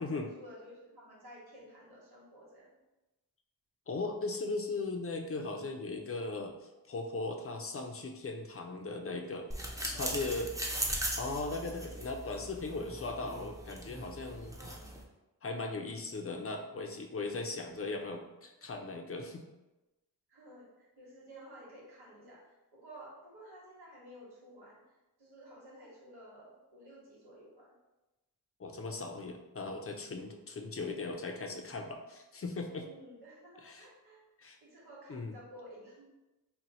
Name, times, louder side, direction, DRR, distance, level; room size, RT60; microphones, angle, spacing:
voice 1, 0.0-2.8 8.6-8.7 9.9-10.1 14.6-14.8 20.3-27.7 32.8-34.2 34.6-36.1, equal, 90° right, -6 dB, 1.2 m, -53 dB
voice 2, 3.9-6.5 6.9-9.5 9.8-10.5 11.2-14.5 15.4-19.4 28.6-32.9 33.6-33.9 34.4-34.6 35.1-35.3, left 3 dB, 35° left, 4 dB, 0.5 m, -38 dB
sound 1, 9.5-15.0, right 1 dB, 10° right, 0.6 m, -39 dB
2.7 x 2.1 x 4.1 m, 1.0 s
cardioid pair, 50°, 38 cm